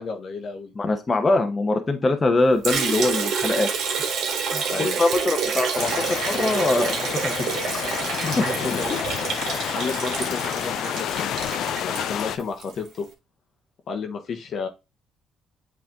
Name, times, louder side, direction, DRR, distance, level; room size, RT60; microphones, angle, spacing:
voice 1, 0.0-0.7 4.6-5.0 8.3-9.0 9.7-11.5 11.8-13.1 13.9-14.7, left 5 dB, 55° left, 5 dB, 1.1 m, -31 dB
voice 2, 0.8-3.7 4.5-7.3 8.0-8.3 8.5-8.6, left 2 dB, 30° left, 6 dB, 1.1 m, -23 dB
Liquid, 2.6-12.7, right 6 dB, 65° right, 1.6 m, -28 dB
sound 1, 5.8-12.4, left 10 dB, 70° left, 0.4 m, -29 dB
7.9 x 3.4 x 3.6 m, 0.26 s
supercardioid pair, 75°, 0 cm